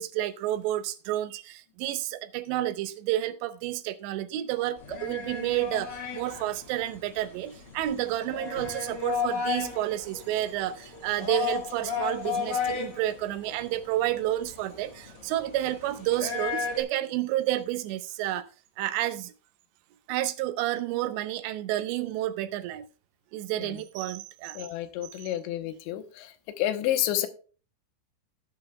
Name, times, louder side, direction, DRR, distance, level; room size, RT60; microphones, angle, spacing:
voice 1, 0.0-18.5 18.8-19.3 20.1-22.9 23.3-24.6, right 14 dB, 80° right, 2.9 m, -30 dB
sound 1, 4.8-16.8, left 6 dB, 65° left, 1.0 m, -34 dB
voice 2, 24.6-26.3 26.6-27.3, left 12 dB, 85° left, 3.2 m, -29 dB
18.0 x 7.6 x 2.2 m
omnidirectional pair, 5.1 m